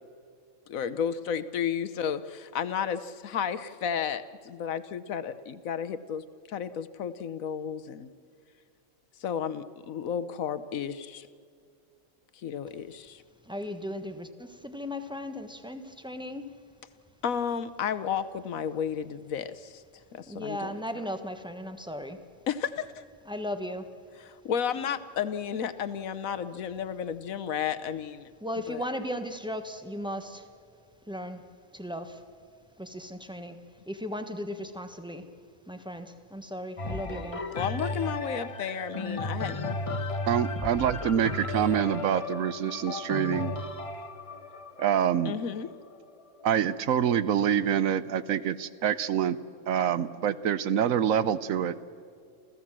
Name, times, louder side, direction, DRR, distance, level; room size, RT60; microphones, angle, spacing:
voice 1, 0.7-8.1 9.2-11.3 12.3-13.2 17.2-19.8 20.1-20.7 22.5-22.9 24.2-28.3 28.7-28.8 37.5-39.8 41.2-41.3 45.2-45.7, left 8 dB, 75° left, 12 dB, 1.3 m, -32 dB
voice 2, 13.5-16.5 20.2-22.2 23.3-23.9 28.4-30.5 31.1-31.4 31.7-32.2 32.8-33.6 33.9-35.2 35.7-37.4, equal, 5° right, 7 dB, 1.1 m, -36 dB
sound 1, 36.8-46.6 47.2-47.3, left 2 dB, 25° left, 1.3 m, -35 dB
voice 3, 40.3-43.5 44.8-45.3 46.4-49.4 49.7-51.8, right 9 dB, 75° right, 15 dB, 1.1 m, -26 dB
28.0 x 15.5 x 7.5 m, 2.4 s
omnidirectional pair, 1.4 m